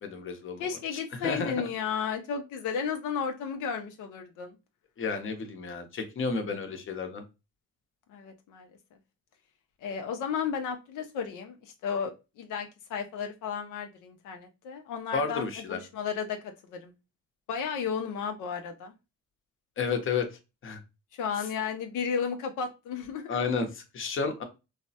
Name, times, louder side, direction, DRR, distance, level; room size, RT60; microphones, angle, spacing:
voice 1, 0.0-0.6 1.2-1.5 5.0-7.2 15.1-15.8 19.8-20.3 20.6-20.8 23.3-24.4, left 5 dB, 45° left, 6 dB, 0.7 m, -31 dB
voice 2, 0.6-4.6 8.1-8.7 9.8-16.9 17.5-18.9 21.1-23.4, left 6 dB, 85° left, 4 dB, 0.5 m, -33 dB
3.2 x 2.0 x 2.7 m, 0.27 s
cardioid pair, 90°, 30 cm